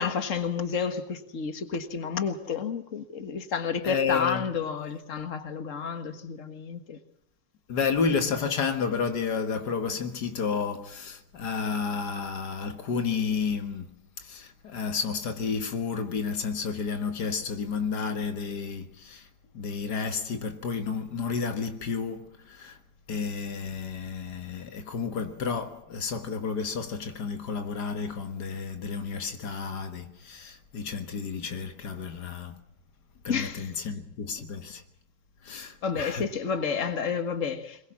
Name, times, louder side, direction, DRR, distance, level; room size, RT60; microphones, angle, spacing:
voice 1, 0.0-7.0 33.3-33.7 35.8-37.8, left 6 dB, 50° left, 2.0 m, -30 dB
voice 2, 3.8-4.5 7.7-13.9 14.2-19.3 19.5-22.8 23.1-32.6 33.2-34.8 35.4-36.2, left 5 dB, 85° left, 2.0 m, -31 dB
22.0 x 21.5 x 7.4 m
omnidirectional pair, 1.7 m